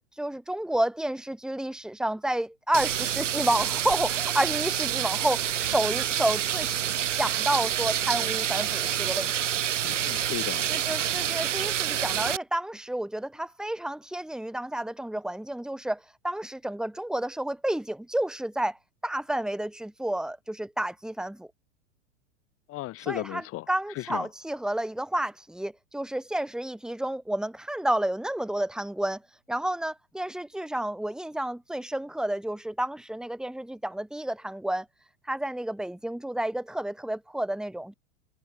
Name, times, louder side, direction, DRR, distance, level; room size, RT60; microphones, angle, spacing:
voice 1, 0.0-6.7 7.1-9.4 10.7-18.8 19.0-21.5 23.0-29.2 29.5-34.9 35.3-37.9, right 1 dB, ahead, 3.9 m, -30 dB
sound 1, 2.7-12.4, right 10 dB, 65° right, 2.0 m, -28 dB
voice 2, 9.8-10.7 22.7-23.6 24.0-24.3, left 17 dB, 35° left, 4.1 m, -35 dB
figure-of-eight pair, 95°, 39 cm